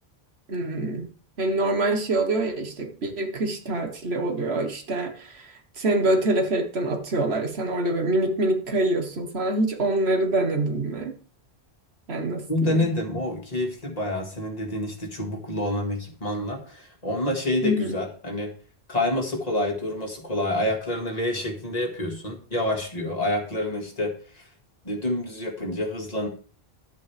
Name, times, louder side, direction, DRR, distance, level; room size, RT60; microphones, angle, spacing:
voice 1, 0.5-1.1 1.4-11.1 12.1-12.9 17.6-17.9, right 2 dB, 75° right, 6 dB, 1.6 m, -25 dB
voice 2, 12.5-18.5 18.9-24.4 24.8-26.3, left 1 dB, 40° left, 1 dB, 2.1 m, -28 dB
11.0 x 8.2 x 3.4 m, 0.39 s
omnidirectional pair, 1.1 m